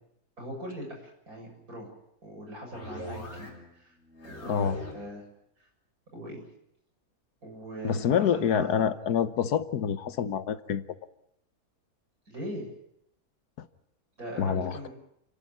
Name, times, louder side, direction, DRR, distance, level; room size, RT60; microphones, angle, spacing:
voice 1, 0.4-1.9 2.2-3.9 4.2-5.3 5.6-5.7 6.1-6.4 7.4-8.8 12.3-12.7 14.2-14.9, equal, 65° right, 0 dB, 7.8 m, -41 dB
sound 1, 2.7-3.7 4.0-5.1, left 1 dB, 45° left, 4.0 m, -41 dB
voice 2, 7.8-10.8 14.4-14.9, left 8 dB, 85° left, 13 dB, 1.6 m, -27 dB
30.0 x 11.5 x 9.7 m, 0.76 s
omnidirectional pair, 1.6 m